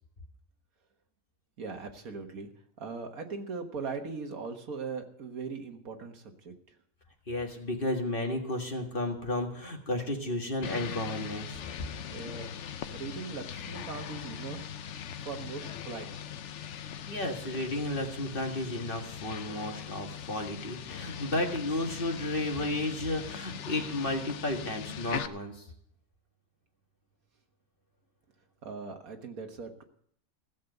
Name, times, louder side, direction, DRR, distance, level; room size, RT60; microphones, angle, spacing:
voice 1, 1.6-2.5 2.8-6.5 12.1-12.5 12.9-14.6 15.3-16.1 28.6-29.8, right 5 dB, 80° right, 5 dB, 1.9 m, -39 dB
voice 2, 7.3-11.6 17.1-25.6, left 1 dB, 40° left, 2 dB, 2.0 m, -33 dB
sound 1, 10.6-25.3, left 8 dB, 60° left, 0.9 m, -40 dB
15.5 x 7.4 x 8.0 m, 0.67 s
omnidirectional pair, 1.5 m